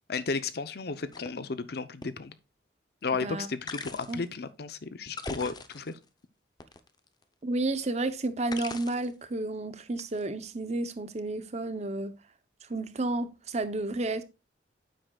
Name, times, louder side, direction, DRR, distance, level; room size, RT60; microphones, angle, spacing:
voice 1, 0.1-2.3 3.0-6.0, left 4 dB, 60° left, 0.7 m, -34 dB
sound 1, 1.1-1.3 2.0-2.1 3.7-4.3 5.1-6.1 6.6-7.2 8.5-9.1 10.0-10.2, left 3 dB, 25° left, 0.7 m, -40 dB
voice 2, 7.4-12.1 12.7-14.2, right 2 dB, 40° right, 0.7 m, -31 dB
9.6 x 7.7 x 2.3 m
head